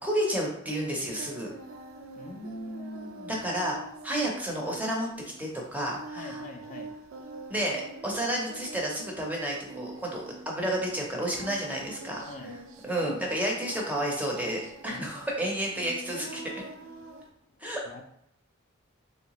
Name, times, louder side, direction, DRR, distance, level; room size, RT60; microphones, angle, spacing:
voice 1, 0.0-1.5 3.3-3.8 4.0-5.1 5.4-6.4 7.5-12.3 12.8-16.5 17.6-17.8, right 1 dB, 10° right, -1 dB, 0.6 m, -31 dB
Singing, 0.7-17.3, right 2 dB, 70° right, 0.5 m, -45 dB
voice 2, 2.1-3.5 6.1-6.9 12.2-12.6 14.9-15.1 17.9-18.0, left 1 dB, 35° left, 3 dB, 0.4 m, -42 dB
3.2 x 2.8 x 2.9 m, 0.75 s
head